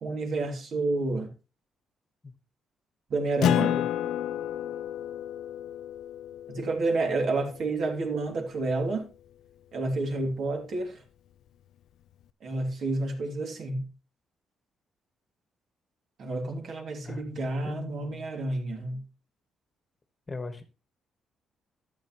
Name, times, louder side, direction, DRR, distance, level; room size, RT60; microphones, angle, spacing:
voice 1, 0.0-1.3 3.1-3.7 6.5-9.1 9.7-11.0 12.4-13.9 16.2-19.0, right 2 dB, 55° right, 2.6 m, -30 dB
Acoustic guitar, 3.4-8.4, left 11 dB, 80° left, 0.5 m, -31 dB
voice 2, 3.4-3.9 17.0-18.3 20.3-20.6, left 3 dB, 25° left, 1.4 m, -38 dB
12.5 x 7.8 x 3.1 m
cardioid pair, 130°, 0 cm